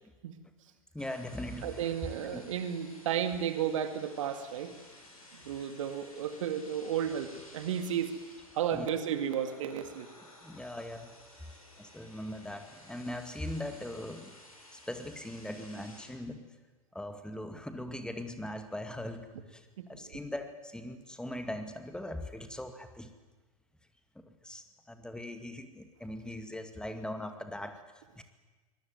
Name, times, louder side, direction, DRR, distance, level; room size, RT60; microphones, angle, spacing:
voice 1, 0.9-1.9 2.3-2.4 8.7-8.9 10.4-14.3 14.7-16.5 16.9-23.1 24.3-27.8 28.2-28.3, left 1 dB, 5° left, 8 dB, 2.2 m, -40 dB
sound 1, 1.0-16.1, left 1 dB, 85° left, 6.2 m, -55 dB
voice 2, 1.6-4.8 5.4-8.1 8.5-10.1 19.8-20.2, right 9 dB, 65° right, 9 dB, 2.2 m, -33 dB
23.5 x 20.0 x 9.5 m, 1.3 s
figure-of-eight pair, 85°, 18 cm